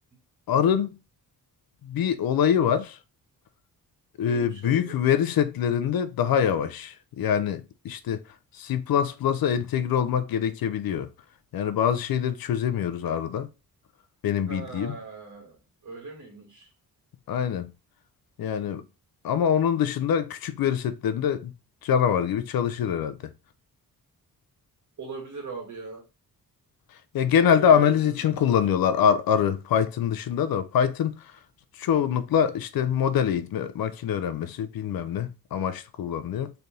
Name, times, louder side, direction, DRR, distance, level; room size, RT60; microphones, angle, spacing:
voice 1, 0.5-0.9 1.8-3.0 4.2-8.2 8.5-11.1 11.5-13.5 14.2-15.0 17.3-17.7 18.4-18.8 19.2-21.5 21.8-23.3 27.1-31.2 31.8-36.5, left 8 dB, 75° left, 0.6 m, -24 dB
voice 2, 4.2-5.0 14.5-16.7 25.0-26.0 27.5-28.6, right 4 dB, 55° right, 2.5 m, -41 dB
4.1 x 3.4 x 3.6 m
wide cardioid pair, 150°, 36 cm